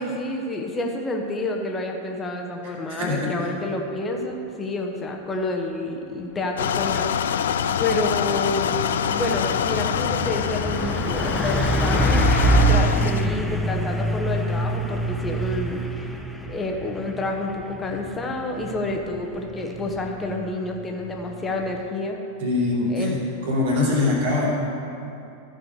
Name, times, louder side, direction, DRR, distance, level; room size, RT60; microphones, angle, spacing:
voice 1, 0.0-8.8 9.1-15.8 16.5-22.2 22.9-23.2, left 2 dB, 20° left, 2 dB, 1.1 m, -29 dB
voice 2, 2.6-3.4 22.4-23.1 23.4-24.5, left 2 dB, 55° right, -4 dB, 2.9 m, -23 dB
sound 1, 6.6-13.3, left 8 dB, 60° left, 0.3 m, -25 dB
Truck, 7.6-21.9, right 1 dB, ahead, 0.6 m, -26 dB
14.5 x 5.1 x 6.6 m, 2.7 s
figure-of-eight pair, 90°, 0 cm